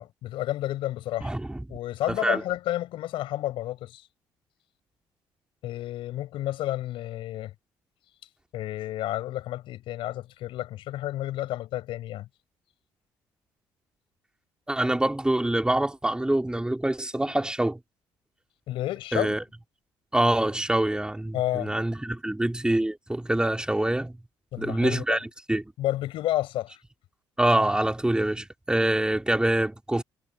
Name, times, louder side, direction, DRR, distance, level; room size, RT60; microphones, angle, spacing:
voice 1, 0.0-1.3 1.7-4.1 5.6-7.5 8.5-12.3 18.7-19.4 21.3-21.7 24.5-25.2 25.8-26.8, left 14 dB, 75° left, 5.2 m, -31 dB
voice 2, 1.2-1.8 2.1-2.4 14.7-17.8 19.1-19.4 20.1-24.1 24.6-25.6 27.4-30.0, right 1 dB, 10° right, 2.9 m, -25 dB
supercardioid pair, 75°, 9 cm